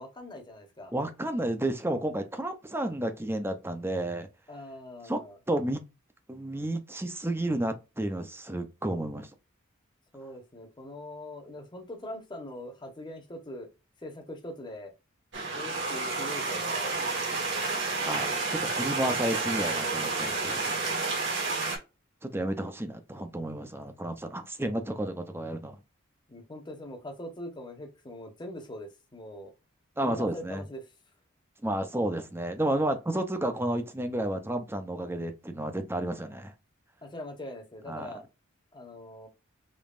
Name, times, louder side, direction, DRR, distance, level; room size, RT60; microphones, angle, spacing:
voice 1, 0.0-0.9 4.5-5.4 10.1-13.7 14.0-14.9 15.5-17.1 26.3-29.5 30.0-30.9 37.0-38.2 38.7-39.3, left 1 dB, 20° left, 1.0 m, -42 dB
voice 2, 0.9-4.3 5.1-5.2 5.5-5.8 6.3-9.3 18.0-20.8 22.2-25.8 30.0-30.6 31.6-36.5 37.9-38.1, right 1 dB, 10° right, 0.6 m, -31 dB
sound 1, 15.3-21.8, right 3 dB, 60° right, 1.8 m, -30 dB
5.3 x 3.1 x 2.4 m
head